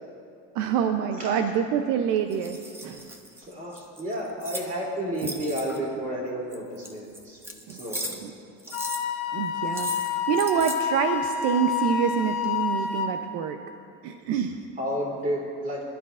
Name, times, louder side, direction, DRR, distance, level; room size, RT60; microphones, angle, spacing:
voice 1, 0.5-2.6 2.8-3.1 7.7-7.8 8.2-8.3 9.3-13.6 14.0-14.6, right 8 dB, 70° right, 6 dB, 0.7 m, -26 dB
sound 1, 2.3-4.7 5.1-5.9 6.5-8.3 8.6-9.0 9.7-10.8, right 1 dB, 10° right, 0.7 m, -37 dB
voice 2, 3.4-7.4 7.7-8.2 14.8-15.8, equal, 30° right, -3 dB, 3.0 m, -31 dB
Wind instrument woodwind instrument, 8.7-13.2, left 7 dB, 65° left, 1.2 m, -28 dB
22.5 x 12.0 x 2.5 m, 2.5 s
cardioid pair, 160°, 29 cm